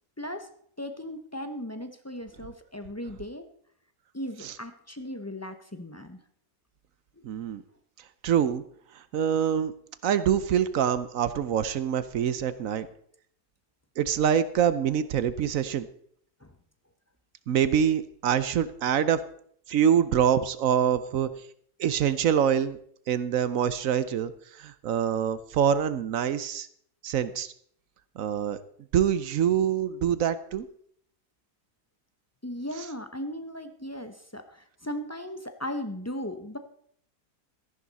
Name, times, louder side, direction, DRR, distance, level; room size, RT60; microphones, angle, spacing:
voice 1, 0.2-0.5 0.8-3.5 4.1-6.2 16.4-16.5 32.4-36.6, left 1 dB, 15° left, 8 dB, 0.5 m, -37 dB
voice 2, 7.2-7.6 8.2-8.6 9.1-9.7 10.0-12.9 14.0-15.9 17.5-19.2 19.7-21.3 21.8-22.8 23.1-24.3 24.6-26.7 27.0-27.5 28.2-28.6 28.9-30.7, right 9 dB, 65° right, 14 dB, 1.0 m, -25 dB
14.0 x 11.0 x 4.1 m, 0.63 s
omnidirectional pair, 1.7 m